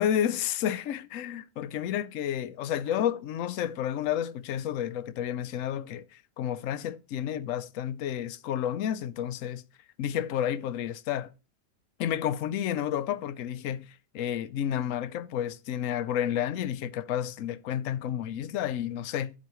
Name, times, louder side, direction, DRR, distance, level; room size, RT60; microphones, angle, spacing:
voice 1, 0.0-9.6 10.0-11.3 12.0-13.9 14.1-19.3, left 10 dB, 65° left, 0.8 m, -31 dB
11.0 x 8.4 x 3.1 m
omnidirectional pair, 1.9 m